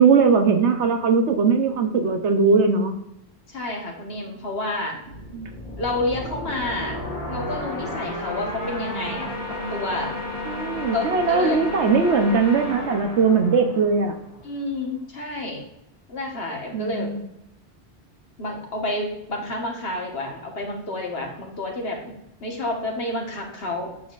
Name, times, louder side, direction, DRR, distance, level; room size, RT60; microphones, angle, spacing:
voice 1, 0.0-2.9 5.3-5.5 10.5-14.2 16.7-17.2, right 5 dB, 85° right, 6 dB, 1.2 m, -19 dB
voice 2, 3.5-5.0 5.8-7.0 7.3-10.1 10.9-11.6 14.4-15.6 16.1-17.1 18.4-22.1 22.4-24.1, left 2 dB, 65° left, 0 dB, 1.7 m, -29 dB
sound 1, 5.0-14.6, left 1 dB, 45° left, 1.9 m, -33 dB
9.1 x 7.1 x 2.5 m, 0.85 s
omnidirectional pair, 1.1 m